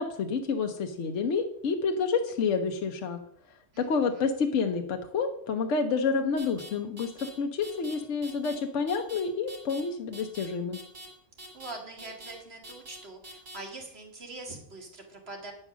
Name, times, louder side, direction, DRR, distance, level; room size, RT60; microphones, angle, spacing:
voice 1, 0.0-3.2 3.8-10.8, left 5 dB, 70° left, 4 dB, 1.1 m, -29 dB
voice 2, 3.7-4.2 11.5-15.5, right 2 dB, 55° right, 2 dB, 1.9 m, -43 dB
sound 1, 6.4-6.7 7.0-7.3 7.6-7.9 8.2-8.5 8.9-9.2 9.5-9.8 10.1-10.5 10.7-11.1 11.4-11.7 12.0-12.3 12.6-13.0 13.2-13.6, right 1 dB, 75° right, 3.3 m, -44 dB
8.8 x 5.4 x 6.0 m, 0.68 s
omnidirectional pair, 1.3 m